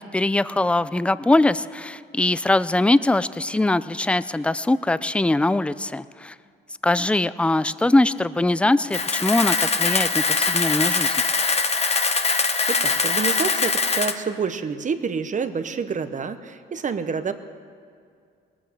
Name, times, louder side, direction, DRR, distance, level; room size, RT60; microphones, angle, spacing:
voice 1, 0.0-6.4 6.8-11.1, left 2 dB, 5° left, 16 dB, 0.4 m, -22 dB
Camera, 8.9-14.1, left 4 dB, 30° left, 0.9 m, -22 dB
voice 2, 12.7-17.3, right 5 dB, 40° right, 10 dB, 0.9 m, -28 dB
20.0 x 8.7 x 7.4 m, 2.3 s
cardioid pair, 90°, 20 cm